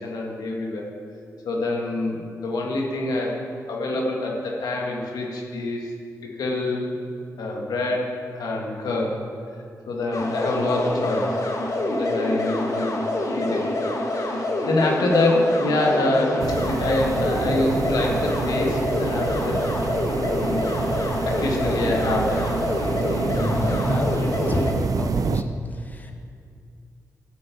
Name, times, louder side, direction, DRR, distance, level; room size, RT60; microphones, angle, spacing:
voice 1, 0.0-0.8 1.4-5.9 6.4-6.9 7.4-9.2 9.9-11.4 11.9-12.9 13.3-13.6 14.0-19.7 20.2-20.9 21.2-22.5, left 2 dB, 85° left, -1 dB, 1.9 m, -26 dB
sound 1, 10.1-24.7, left 1 dB, 55° left, 1.8 m, -26 dB
sound 2, 16.4-25.4, right 5 dB, 60° right, 0.5 m, -28 dB
voice 2, 23.3-24.1 24.5-25.5 25.8-26.1, left 1 dB, 25° left, 3 dB, 1.2 m, -27 dB
13.0 x 5.4 x 7.0 m, 2.3 s
cardioid pair, 55°, 7 cm